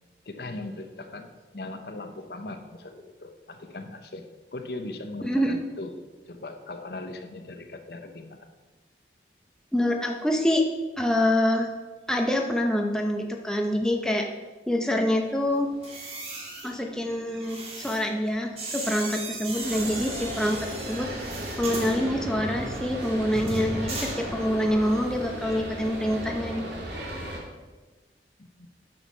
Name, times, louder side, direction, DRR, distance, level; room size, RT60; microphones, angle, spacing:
voice 1, 0.2-5.9 6.3-8.5 28.4-28.7, left 2 dB, 60° left, 7 dB, 0.8 m, -39 dB
voice 2, 5.2-5.6 9.7-10.6 11.0-11.7 12.1-14.2 14.7-15.7 16.6-20.6 20.9-21.1 21.6-26.6, left 1 dB, 5° left, 1 dB, 0.7 m, -26 dB
sound 1, 15.7-24.8 25.1-25.4, right 2 dB, 35° right, 1.8 m, -37 dB
sound 2, 19.6-27.4, equal, 75° right, 2.4 m, -36 dB
9.1 x 6.3 x 5.5 m, 1.3 s
head